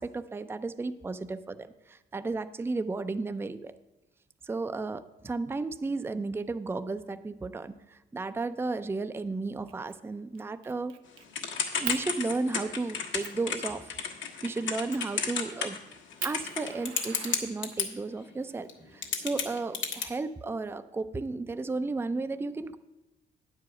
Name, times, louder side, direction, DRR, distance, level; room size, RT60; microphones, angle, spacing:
voice 1, 0.0-3.7 4.4-10.9 11.8-13.9 14.4-15.8 16.2-22.8, right 3 dB, 10° right, 11 dB, 0.4 m, -34 dB
Fire, 9.7-10.0 10.3-11.3 11.8-12.0 12.6-12.7 13.2-13.4 14.9-15.2 15.7-15.8 16.2-18.0 19.0-20.0, right 11 dB, 85° right, 0.6 m, -41 dB
Typing / Telephone, 11.3-17.9 18.7-18.8 19.0-20.0, left 6 dB, 70° left, 1.4 m, -32 dB
9.3 x 4.9 x 7.7 m, 1.0 s
cardioid pair, 90°, 20 cm